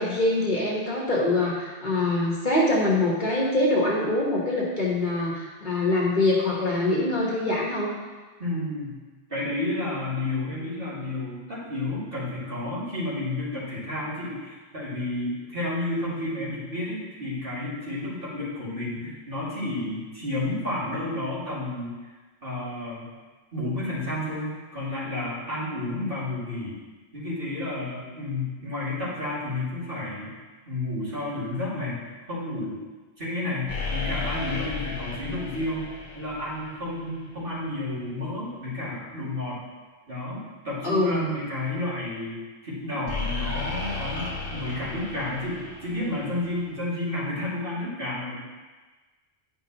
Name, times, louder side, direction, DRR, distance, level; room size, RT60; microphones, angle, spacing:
voice 1, 0.0-7.9 40.8-41.2, left 2 dB, 45° left, -4 dB, 1.4 m, -24 dB
voice 2, 8.4-8.9 9.3-21.9 22.4-23.1 23.5-26.8 27.1-30.3 30.7-32.8 33.2-35.9 36.1-39.6 40.1-48.3, left 2 dB, 55° right, -9 dB, 2.5 m, -31 dB
sound 1, 33.7-37.4 43.1-46.8, left 3 dB, 80° left, 1.3 m, -34 dB
9.4 x 5.3 x 2.9 m, 1.3 s
omnidirectional pair, 1.1 m